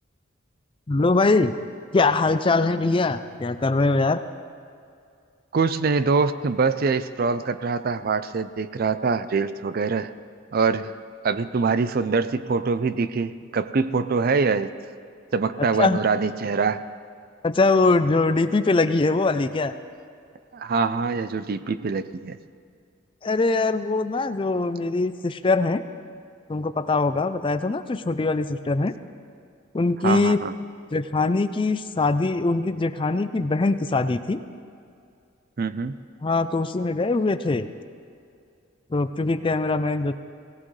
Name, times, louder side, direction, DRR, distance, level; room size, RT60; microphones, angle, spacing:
voice 1, 0.9-1.6 1.9-4.2 15.8-16.0 17.4-19.7 23.2-25.8 26.5-28.9 29.7-30.4 30.9-34.4 36.2-37.7 38.9-40.1, left 3 dB, 25° left, 11 dB, 0.4 m, -22 dB
voice 2, 5.5-10.1 10.5-10.9 11.2-14.7 15.3-16.8 20.5-22.4 30.0-30.5 35.6-36.0, right 4 dB, 50° right, 13 dB, 0.4 m, -24 dB
18.0 x 17.5 x 3.2 m, 2.4 s
head